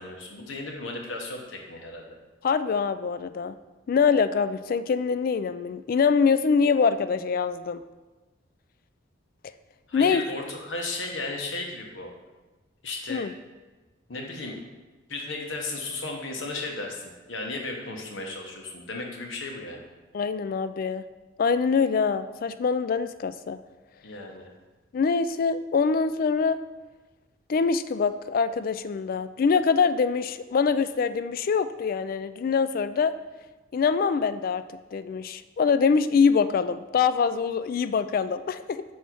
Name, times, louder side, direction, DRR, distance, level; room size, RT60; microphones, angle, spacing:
voice 1, 0.0-2.2 9.9-12.1 12.8-13.3 14.1-14.6 15.1-17.0 17.3-19.9 24.0-24.5, left 2 dB, 75° left, 1 dB, 1.2 m, -35 dB
voice 2, 2.4-3.6 3.9-7.8 9.9-10.2 13.1-13.3 20.1-21.0 21.4-23.6 24.9-26.6 27.5-33.1 33.7-34.6 34.9-38.8, left 5 dB, 45° left, 12 dB, 0.3 m, -24 dB
5.6 x 4.3 x 6.1 m, 1.2 s
head